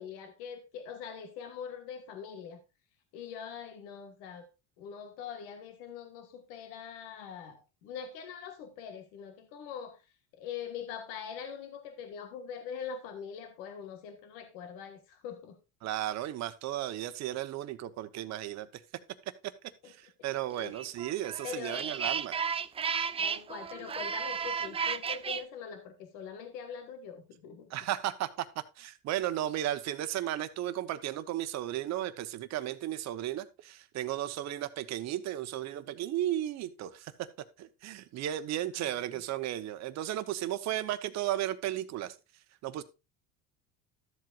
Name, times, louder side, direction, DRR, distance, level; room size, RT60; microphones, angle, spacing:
voice 1, 0.0-2.6 3.1-4.5 4.8-10.0 10.3-15.6 19.8-19.9 20.2-20.3 20.6-20.7 21.4-22.0 23.2-27.7 38.7-38.9, left 7 dB, 85° left, 1.5 m, -43 dB
voice 2, 15.8-18.7 19.8-22.4 27.7-28.5 28.8-37.3 37.6-42.1 42.6-42.8, right 13 dB, 55° right, 0.9 m, -34 dB
sound 1, 20.7-25.4, right 6 dB, 20° right, 0.4 m, -33 dB
13.0 x 7.7 x 2.4 m
cardioid pair, 110°, 32 cm